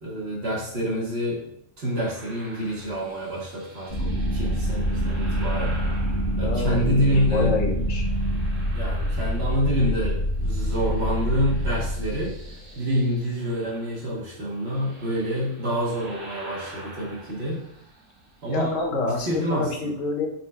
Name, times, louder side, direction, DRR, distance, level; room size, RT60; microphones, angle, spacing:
voice 1, 0.0-5.8 6.4-7.5 8.7-12.3 12.7-17.6 18.4-20.0, equal, 55° right, -3 dB, 1.3 m, -27 dB
sound 1, 1.9-7.3 7.8-10.0 10.3-19.4, right 1 dB, 80° right, 1.4 m, -46 dB
sound 2, 3.9-12.6, equal, 45° left, 1.7 m, -26 dB
voice 2, 6.4-8.1 18.5-20.3, left 3 dB, 80° left, 1 dB, 1.1 m, -28 dB
4.0 x 3.6 x 2.2 m, 0.70 s
omnidirectional pair, 1.3 m